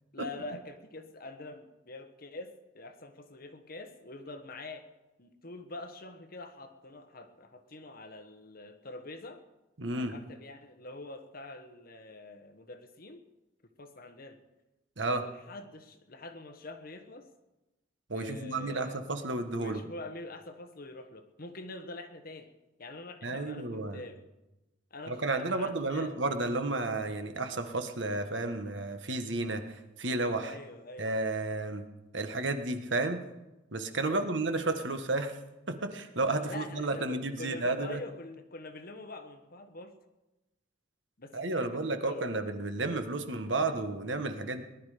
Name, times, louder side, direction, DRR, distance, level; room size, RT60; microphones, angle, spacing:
voice 1, 0.1-4.9 5.2-9.4 9.9-13.2 13.8-14.4 15.1-17.3 18.1-19.1 19.5-22.5 22.8-24.2 24.9-26.1 30.4-31.1 34.0-34.4 36.4-39.9 41.2-42.3, left 2 dB, 50° left, 7 dB, 1.4 m, -45 dB
voice 2, 9.8-10.1 15.0-15.2 18.1-19.8 23.2-24.0 25.1-29.6 30.0-30.5 31.0-31.8 32.1-33.2 33.7-35.3 35.7-38.0 41.3-44.6, right 2 dB, 70° right, 8 dB, 1.4 m, -32 dB
19.0 x 11.5 x 5.1 m, 1.0 s
head